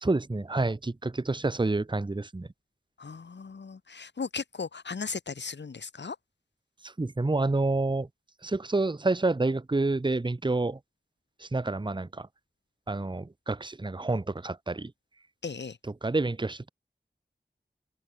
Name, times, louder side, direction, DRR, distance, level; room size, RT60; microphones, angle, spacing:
voice 1, 0.0-2.5 6.8-8.1 8.4-10.8 11.4-12.3 12.9-14.9 15.8-16.7, right 2 dB, 25° right, 0.7 m, -28 dB
voice 2, 3.0-6.2 15.4-15.8, left 5 dB, 75° left, 0.8 m, -37 dB
wide cardioid pair, 45°, 18 cm